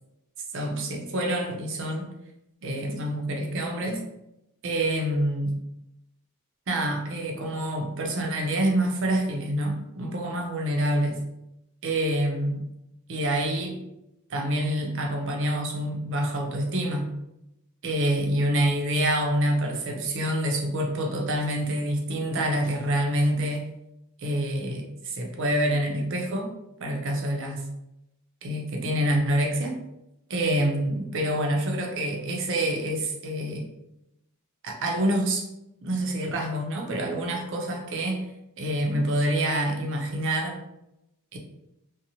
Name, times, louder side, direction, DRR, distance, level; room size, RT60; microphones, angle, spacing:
voice 1, 0.5-2.1 2.6-4.0 4.6-5.5 6.7-11.2 11.8-12.6 13.1-13.8 14.3-17.1 17.8-23.6 24.2-26.5 26.8-27.6 28.4-29.8 30.3-33.7 34.6-35.5 35.8-38.3 38.6-40.6 41.3-41.4, right 1 dB, 60° right, 2 dB, 0.5 m, -27 dB
2.8 x 2.0 x 2.6 m, 0.88 s
head